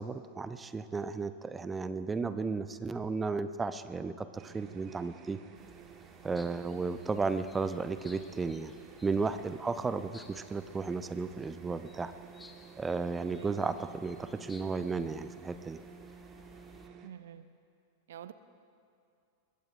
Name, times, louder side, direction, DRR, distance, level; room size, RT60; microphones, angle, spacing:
voice 1, 0.0-5.4 6.2-8.7 9.0-12.1 12.8-15.8, right 4 dB, 15° right, 12 dB, 0.6 m, -34 dB
sound 1, 4.4-17.1, right 7 dB, 35° right, 1.0 m, -53 dB
sound 2, 5.5-16.9, left 3 dB, 15° left, 1.3 m, -58 dB
voice 2, 17.0-17.4 18.1-18.3, right 10 dB, 60° right, 13 dB, 0.5 m, -47 dB
23.5 x 21.5 x 2.3 m, 2.6 s
figure-of-eight pair, 90°, 0 cm